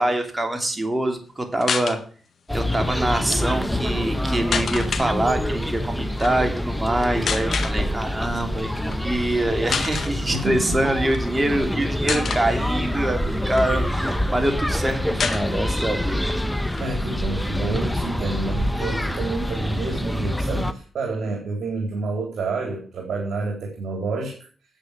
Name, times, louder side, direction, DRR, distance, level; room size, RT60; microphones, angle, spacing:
voice 1, 0.0-2.0 2.5-16.3, right 1 dB, 20° right, 5 dB, 3.2 m, -25 dB
sound 1, 1.6-2.0 3.1-3.4 4.5-5.1 6.1-6.3 7.3-7.8 8.8-9.0 9.3-9.4 9.7-10.1 11.0-11.6 12.1-12.5 13.1-14.1 14.4-14.5 14.7-14.8 15.2-15.9 16.3-16.4 16.7-17.7, left 6 dB, 60° left, 1.7 m, -28 dB
sound 2, 2.5-20.7, left 1 dB, 5° left, 1.2 m, -26 dB
voice 2, 10.3-10.9 16.8-24.4, right 3 dB, 65° right, 2 dB, 3.6 m, -29 dB
10.0 x 7.9 x 8.8 m, 0.42 s
cardioid pair, 65°, 0 cm